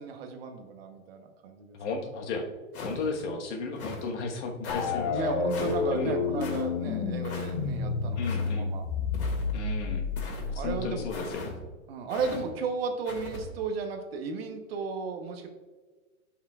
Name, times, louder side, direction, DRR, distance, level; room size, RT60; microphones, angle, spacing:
voice 1, 0.0-1.8 5.1-8.8 10.5-11.1 11.9-15.5, right 4 dB, 45° right, 5 dB, 1.0 m, -34 dB
voice 2, 1.7-2.5 2.8-5.2 5.9-6.2 8.2-8.7 9.5-10.0 10.5-11.5, left 4 dB, 55° left, 3 dB, 1.3 m, -34 dB
sound 1, 2.7-3.2 3.7-4.1 4.6-4.9 5.5-5.8 6.4-6.6 7.2-7.5 8.2-8.5 9.1-9.6 10.2-10.5 11.1-11.5 12.1-12.4 13.1-13.4, left 3 dB, 90° left, 2.2 m, -39 dB
sound 2, 4.7-11.3, left 5 dB, 35° left, 0.7 m, -30 dB
13.0 x 5.7 x 2.4 m, 1.3 s
hypercardioid pair, 155°, 42 cm